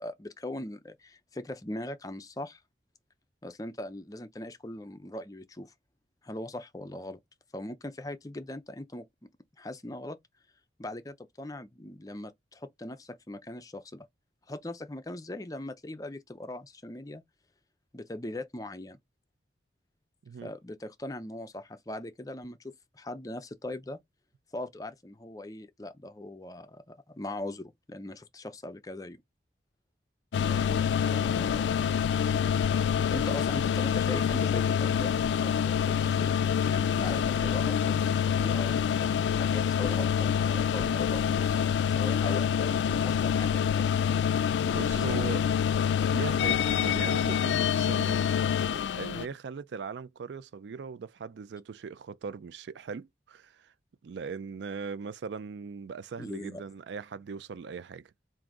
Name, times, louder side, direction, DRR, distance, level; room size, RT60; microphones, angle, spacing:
voice 1, 0.0-2.6 3.4-5.7 6.2-7.2 7.5-9.1 9.6-10.2 10.8-14.1 14.5-17.2 17.9-19.0 20.4-24.0 24.5-29.2 30.5-31.7 32.7-43.7 44.6-45.4 56.2-56.6, left 1 dB, 20° left, 0.5 m, -40 dB
sound 1, 30.3-49.3, left 8 dB, 80° left, 0.3 m, -26 dB
voice 2, 44.7-45.4 46.1-48.2 48.9-53.7 54.0-58.1, right 5 dB, 75° right, 0.4 m, -39 dB
3.8 x 2.6 x 4.6 m
head